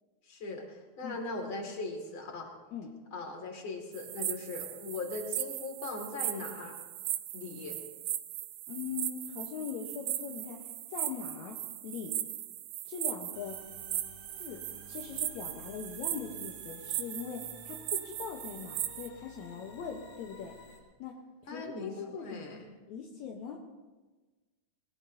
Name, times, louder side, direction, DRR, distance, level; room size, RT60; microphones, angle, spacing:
voice 1, 0.2-2.5 3.1-6.7 7.3-7.8 21.5-21.9 22.2-22.7, left 3 dB, 45° left, 1 dB, 3.1 m, -39 dB
sound 1, 3.9-19.1, right 13 dB, 80° right, 2.1 m, -38 dB
voice 2, 8.7-11.6 11.8-12.1 12.9-13.6 14.4-14.6 14.9-20.5 21.0-21.1 21.4-22.5 22.9-23.6, left 6 dB, 75° left, 1 dB, 2.4 m, -41 dB
sound 2, 13.3-20.8, left 2 dB, 90° left, 5.4 m, -53 dB
21.5 x 20.5 x 2.8 m, 1.3 s
omnidirectional pair, 3.4 m